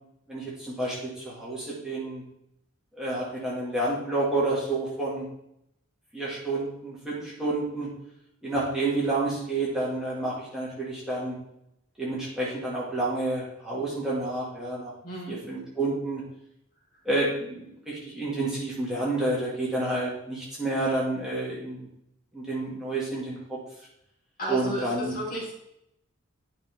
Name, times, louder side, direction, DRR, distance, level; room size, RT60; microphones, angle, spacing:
voice 1, 0.3-2.2 3.0-5.3 6.1-7.9 8.4-11.4 12.0-14.9 15.3-16.2 17.1-21.9 22.3-23.4 24.5-25.1, right 2 dB, 5° right, -7 dB, 2.1 m, -29 dB
voice 2, 15.0-15.3 24.4-25.5, equal, 45° left, -4 dB, 2.7 m, -33 dB
10.0 x 5.7 x 3.5 m, 0.79 s
head